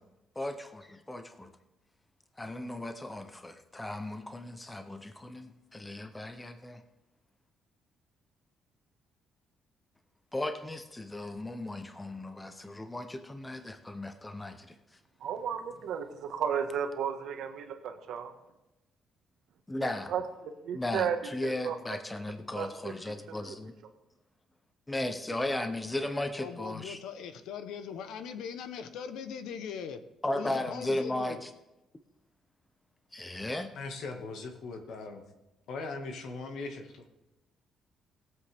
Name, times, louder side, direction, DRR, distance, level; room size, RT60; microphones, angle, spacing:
voice 1, 0.4-1.5 2.4-6.8 10.3-14.8 19.7-20.1 20.7-23.7 24.9-27.0 30.2-31.5 33.1-33.7, left 1 dB, 10° left, 8 dB, 0.6 m, -36 dB
voice 2, 15.2-18.3 20.1-20.2 20.6-21.2 21.4-21.8 22.5-22.9 23.4-23.6, right 8 dB, 65° right, 6 dB, 1.3 m, -33 dB
voice 3, 26.4-30.0 30.3-31.4, left 7 dB, 75° left, 10 dB, 0.8 m, -40 dB
voice 4, 33.7-35.2 35.7-37.0, left 3 dB, 60° left, 4 dB, 1.7 m, -39 dB
20.5 x 7.7 x 3.5 m, 0.97 s
cardioid pair, 175°, 0 cm